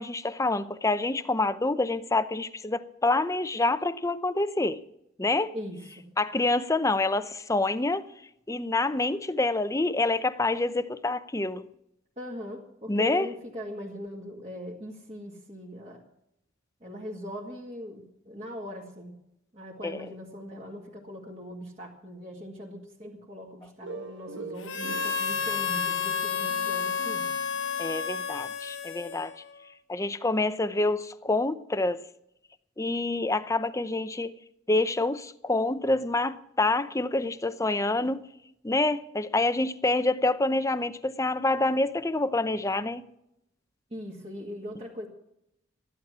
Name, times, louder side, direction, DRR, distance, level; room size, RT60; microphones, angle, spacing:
voice 1, 0.0-4.8 5.2-5.5 6.2-8.0 8.5-11.7 12.9-13.3 19.8-20.0 27.8-29.3 29.9-32.0 32.8-34.4 34.7-38.2 38.6-43.0, left 2 dB, 15° left, 0.6 m, -27 dB
voice 2, 5.5-6.1 12.2-16.0 16.8-19.2 19.5-27.3 43.9-45.1, equal, 35° right, 2.0 m, -40 dB
sound 1, 23.8-28.4, right 3 dB, 70° right, 1.2 m, -44 dB
Harmonica, 24.6-29.5, left 6 dB, 65° left, 1.3 m, -30 dB
13.5 x 11.5 x 6.1 m
head